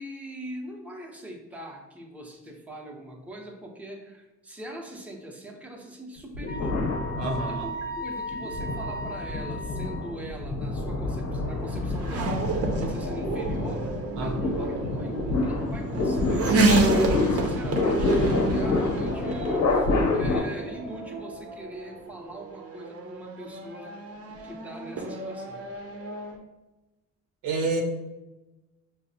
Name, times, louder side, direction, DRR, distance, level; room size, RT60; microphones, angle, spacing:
voice 1, 0.0-6.8 7.3-24.0 24.3-25.6, right 1 dB, 5° right, 0 dB, 0.6 m, -42 dB
sound 1, 6.3-7.8 8.3-20.4, left 2 dB, 75° left, 0.9 m, -28 dB
Wind instrument woodwind instrument, 6.5-10.3, equal, 30° left, 0.7 m, -37 dB
voice 2, 7.2-7.7 14.2-14.4 27.4-27.8, right 3 dB, 90° right, 1 dB, 0.8 m, -28 dB
Race car auto racing / Accelerating revving vroom, 10.1-26.4, right 2 dB, 50° right, 0.6 m, -30 dB
5.5 x 2.0 x 2.7 m, 1.1 s
cardioid pair, 90°, 30 cm